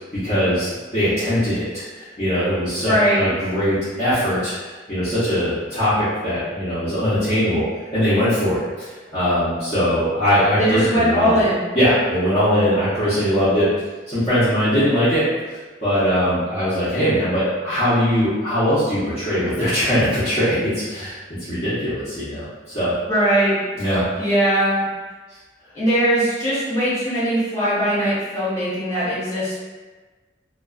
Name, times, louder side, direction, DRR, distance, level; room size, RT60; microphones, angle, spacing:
voice 1, 0.1-7.7 7.9-11.4 11.7-13.7 14.1-15.2 15.8-22.9 23.8-24.0, equal, 35° left, -15 dB, 0.8 m, -21 dB
voice 2, 2.8-3.2 10.6-11.6 23.1-23.6 24.2-24.8 25.7-29.6, equal, 20° left, -12 dB, 1.1 m, -20 dB
2.3 x 2.2 x 2.3 m, 1.3 s
head